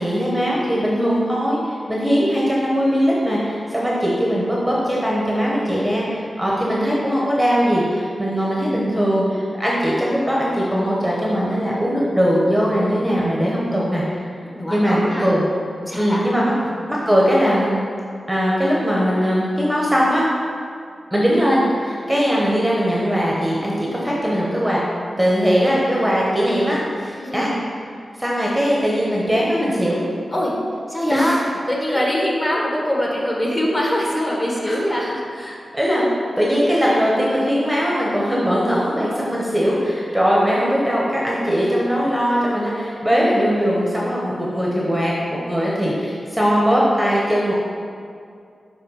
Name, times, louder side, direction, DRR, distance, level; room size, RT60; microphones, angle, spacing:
voice 1, 0.0-14.2 14.7-15.4 16.0-16.5 16.9-17.8 18.3-20.3 21.1-24.8 25.2-27.5 28.2-30.0 31.1-31.3 34.7-34.8 35.7-36.0 36.4-47.5, equal, 5° right, -5 dB, 0.9 m, -20 dB
voice 2, 14.4-15.3 15.8-16.3 27.1-27.5 30.3-30.5 30.9-31.4 31.7-35.6, equal, 25° left, -3 dB, 1.3 m, -23 dB
6.9 x 3.5 x 5.6 m, 2.3 s
wide cardioid pair, 120°, 0 cm